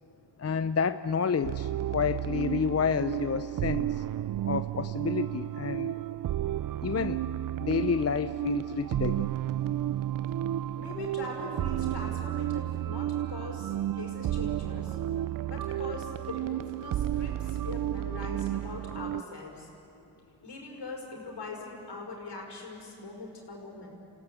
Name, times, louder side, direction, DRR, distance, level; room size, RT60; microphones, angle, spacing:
voice 1, 0.4-4.0 4.4-5.9 6.8-7.2 7.6-9.3, left 6 dB, 35° left, 12 dB, 0.7 m, -29 dB
sound 1, 1.4-19.2, right 12 dB, 50° right, 0.5 m, -32 dB
voice 2, 10.8-15.0 15.5-19.7 20.4-23.9, left 3 dB, 65° left, 0 dB, 5.5 m, -41 dB
28.5 x 16.5 x 8.4 m, 2.9 s
cardioid pair, 50°, 44 cm